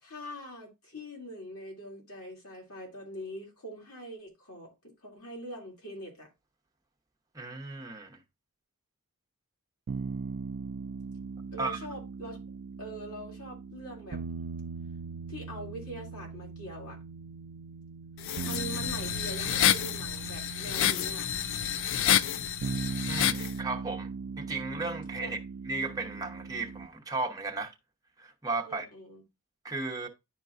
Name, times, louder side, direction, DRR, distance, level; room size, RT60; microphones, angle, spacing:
voice 1, 0.0-4.7 5.0-6.3 11.5-12.4 12.8-14.2 15.3-17.0 18.4-21.3 25.2-25.3 28.6-29.2, equal, 75° left, 2.6 m, -43 dB
voice 2, 7.3-8.2 11.6-11.8 23.1-24.1 24.4-25.4 25.7-27.7 28.2-28.9 29.6-30.1, right 3 dB, 15° right, 0.9 m, -35 dB
sound 1, 9.9-26.9, right 5 dB, 55° right, 0.4 m, -39 dB
sound 2, 18.2-23.5, left 10 dB, 60° left, 0.4 m, -29 dB
11.0 x 4.5 x 2.4 m
head